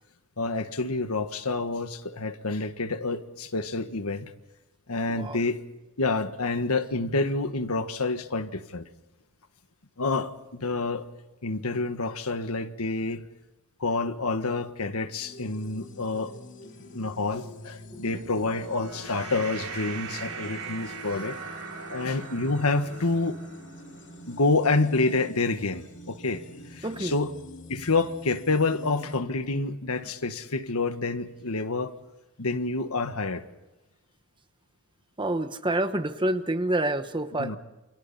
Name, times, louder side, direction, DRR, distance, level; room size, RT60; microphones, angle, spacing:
voice 1, 0.4-4.3 4.9-5.6 6.0-8.9 10.0-11.1 11.4-13.3 13.8-16.3 16.9-21.4 21.9-23.4 24.3-26.4 26.7-27.3 27.7-31.9 32.4-33.5 37.4-37.6, left 3 dB, 80° left, 1.6 m, -28 dB
voice 2, 5.1-5.5 18.0-18.3 23.6-24.4 26.8-27.2 29.9-30.0 35.2-37.6, right 1 dB, 20° right, 1.1 m, -29 dB
sound 1, 15.2-29.2, left 1 dB, 55° left, 3.0 m, -46 dB
sound 2, 17.8-24.4, right 5 dB, 75° right, 3.4 m, -40 dB
28.5 x 28.5 x 4.3 m
head